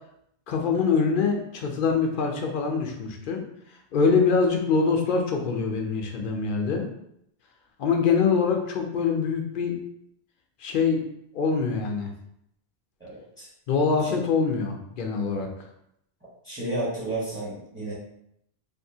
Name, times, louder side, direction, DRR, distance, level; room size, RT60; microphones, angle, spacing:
voice 1, 0.5-3.4 3.9-6.9 7.8-9.8 10.6-11.0 11.3-12.1 13.7-15.5, left 5 dB, 60° left, 2 dB, 0.7 m, -24 dB
voice 2, 13.0-13.5 14.0-14.2 16.2-17.9, right 2 dB, 15° right, -8 dB, 0.8 m, -32 dB
3.5 x 2.5 x 2.7 m, 0.76 s
omnidirectional pair, 1.1 m